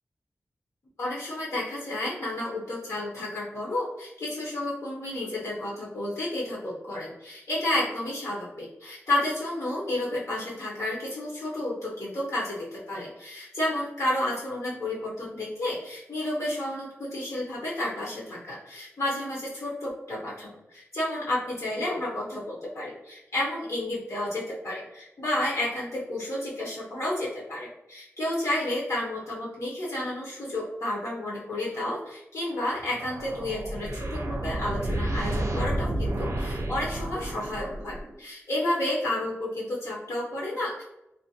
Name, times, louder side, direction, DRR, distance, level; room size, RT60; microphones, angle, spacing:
voice 1, 1.0-40.8, left 1 dB, 75° left, -5 dB, 0.7 m, -31 dB
sound 1, 32.8-38.2, right 1 dB, 60° right, 0.4 m, -31 dB
2.5 x 2.2 x 2.8 m, 0.88 s
cardioid pair, 50°, 5 cm